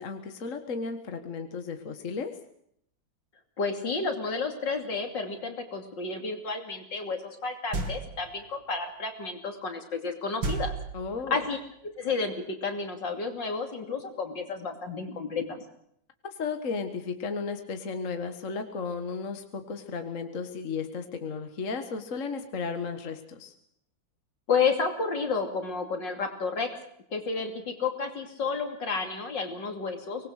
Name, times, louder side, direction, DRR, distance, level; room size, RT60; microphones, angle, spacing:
voice 1, 0.0-2.4 10.9-11.4 16.2-23.5, left 5 dB, 45° left, 7 dB, 1.8 m, -34 dB
voice 2, 3.6-10.7 11.3-11.6 12.0-15.6 24.5-26.8 27.1-30.3, left 4 dB, 70° left, 5 dB, 3.4 m, -31 dB
sound 1, 7.7-8.4 10.4-11.4, right 3 dB, 80° right, 3.2 m, -33 dB
24.5 x 20.0 x 6.5 m, 0.72 s
omnidirectional pair, 2.1 m